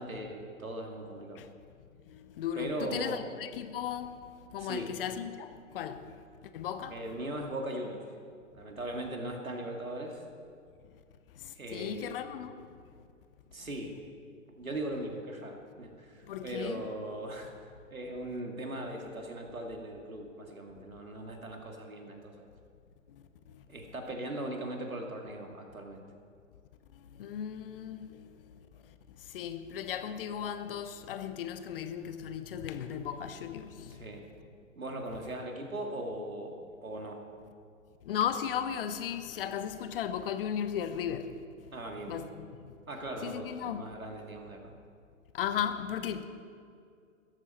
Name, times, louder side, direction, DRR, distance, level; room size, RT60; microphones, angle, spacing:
voice 1, 0.0-1.4 2.6-3.2 4.6-4.9 6.9-8.0 8.5-10.2 11.6-12.2 13.5-13.9 14.5-17.5 17.9-22.5 23.7-26.0 33.9-34.2 34.8-37.2 41.7-42.4 42.9-44.6, right 1 dB, 85° right, 2.5 m, -39 dB
voice 2, 2.1-4.2 4.5-6.2 6.5-7.0 11.4-12.7 16.3-16.8 23.5-23.6 27.2-28.5 29.3-34.1 38.0-41.4 42.1-42.8 43.2-43.8 45.3-46.2, left 9 dB, 45° left, 1.0 m, -36 dB
15.5 x 14.0 x 4.4 m
figure-of-eight pair, 120°, 40 cm